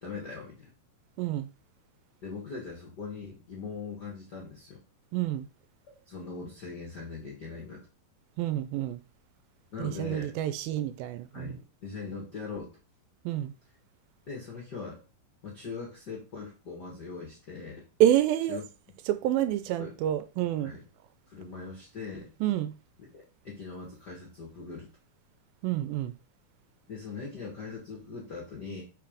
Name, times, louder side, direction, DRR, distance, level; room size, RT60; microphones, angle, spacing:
voice 1, 0.0-0.7 2.2-4.8 5.8-7.9 9.7-10.3 11.3-12.8 14.3-15.0 15.4-17.8 18.5-18.6 19.8-19.9 20.6-20.8 21.3-22.3 23.1-24.9 26.9-28.8, left 4 dB, 55° left, 1.1 m, -41 dB
voice 2, 1.2-1.5 5.1-5.5 8.4-9.0 9.8-11.6 13.3-13.5 18.0-18.6 19.1-20.7 22.4-22.7 25.6-26.1, right 12 dB, 80° right, 2.2 m, -28 dB
5.7 x 4.6 x 5.0 m
omnidirectional pair, 4.3 m